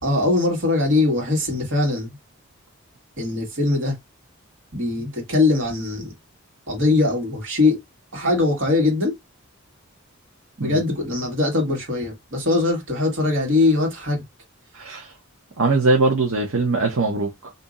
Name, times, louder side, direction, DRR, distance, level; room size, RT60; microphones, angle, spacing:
voice 1, 0.0-2.1 3.2-4.0 4.7-6.1 6.7-7.8 8.1-9.1 10.6-14.2, left 2 dB, 65° right, 1.7 m, -21 dB
voice 2, 14.7-15.1 15.6-17.5, right 3 dB, 80° right, 0.9 m, -21 dB
2.8 x 2.7 x 3.7 m
head